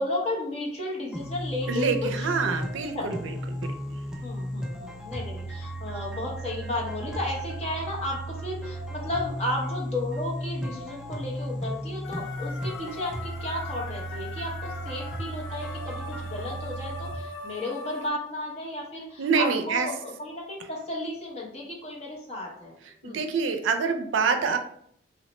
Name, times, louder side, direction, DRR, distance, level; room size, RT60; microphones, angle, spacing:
voice 1, 0.0-2.3 2.9-3.4 4.2-22.7 23.0-23.2, left 1 dB, 35° left, -3 dB, 0.7 m, -33 dB
sound 1, 1.1-17.1, equal, 5° right, 0.3 m, -35 dB
voice 2, 1.7-3.3 3.6-3.7 19.2-19.9 23.0-24.6, right 5 dB, 85° right, 5 dB, 0.4 m, -26 dB
sound 2, 12.0-18.1, left 3 dB, 85° left, 0.4 m, -41 dB
3.0 x 2.1 x 3.0 m, 0.66 s
head